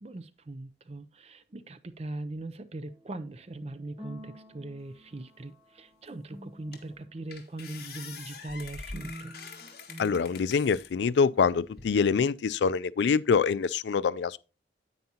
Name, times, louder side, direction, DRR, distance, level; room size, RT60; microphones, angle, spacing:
voice 1, 0.0-9.4, right 2 dB, 35° right, 0.5 m, -40 dB
sound 1, 2.9-7.2 9.0-11.1, equal, 20° right, 1.3 m, -50 dB
sound 2, 6.1-6.2 6.7-7.0 7.3-10.9 11.4-12.1, left 4 dB, 55° left, 1.6 m, -44 dB
voice 2, 10.0-14.4, left 5 dB, 75° left, 0.4 m, -25 dB
9.4 x 8.7 x 2.8 m
head